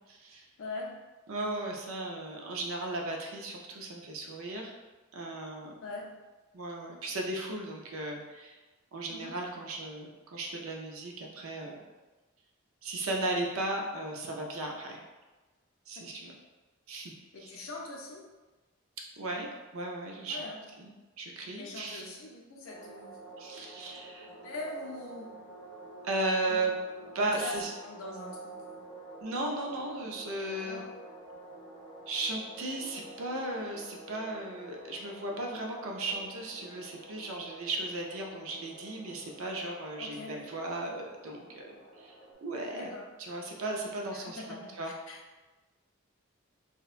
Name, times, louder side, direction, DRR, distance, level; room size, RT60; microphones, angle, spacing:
voice 1, 0.1-0.5 1.3-4.7 5.1-5.8 6.5-8.6 8.9-11.9 12.8-15.0 15.9-16.3 16.9-17.1 17.4-17.5 19.2-19.5 19.7-20.5 20.8-20.9 21.2-22.0 23.4-24.3 26.0-26.7 27.1-27.7 29.2-30.8 32.1-42.1 42.4-42.9 43.2-44.9, right 2 dB, 75° right, 1 dB, 0.4 m, -36 dB
voice 2, 0.6-0.9 5.8-6.1 9.1-9.3 16.0-16.1 17.3-18.3 20.3-20.6 21.6-23.2 24.2-25.3 26.5-26.6 27.2-27.6 27.8-28.8 30.6-30.9 40.0-40.4 42.7-43.1 44.1-45.2, left 2 dB, 70° left, -2 dB, 0.5 m, -42 dB
sound 1, 22.7-42.3, right 2 dB, 5° left, 0.8 m, -49 dB
2.8 x 2.1 x 2.4 m, 1.2 s
head